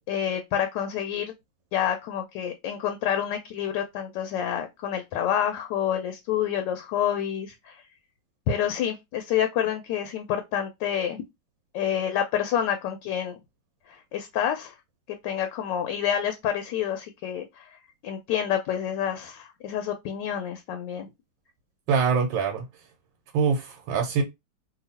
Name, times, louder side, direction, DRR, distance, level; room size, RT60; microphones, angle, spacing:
voice 1, 0.1-1.3 1.7-7.8 8.5-11.2 11.7-13.4 13.9-14.7 15.1-17.7 18.0-21.1, left 9 dB, 80° left, 1.2 m, -28 dB
voice 2, 21.9-22.7 23.3-24.2, right 6 dB, 85° right, 1.4 m, -24 dB
2.9 x 2.6 x 4.0 m
omnidirectional pair, 2.0 m